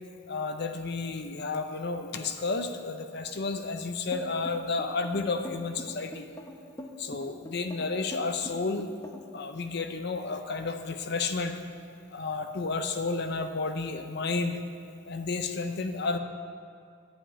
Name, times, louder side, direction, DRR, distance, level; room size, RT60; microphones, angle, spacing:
voice 1, 0.3-6.3 7.0-8.9 9.3-11.5 12.1-14.6 15.1-16.2, left 3 dB, 55° left, 7 dB, 0.6 m, -31 dB
sound 1, 4.1-9.4, equal, 15° left, 0.8 m, -43 dB
11.0 x 5.2 x 8.6 m, 2.4 s
head